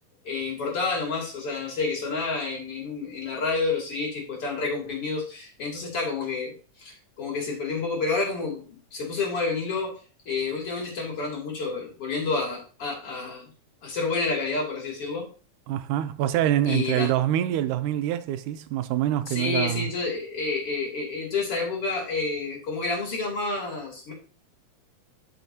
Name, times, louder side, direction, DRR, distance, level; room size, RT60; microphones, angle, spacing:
voice 1, 0.2-9.9 10.2-13.5 13.8-15.3 16.7-17.1 19.3-24.1, left 4 dB, 50° left, 3.4 m, -29 dB
voice 2, 15.7-19.9, right 12 dB, 85° right, 2.1 m, -25 dB
12.0 x 5.8 x 2.8 m
omnidirectional pair, 3.5 m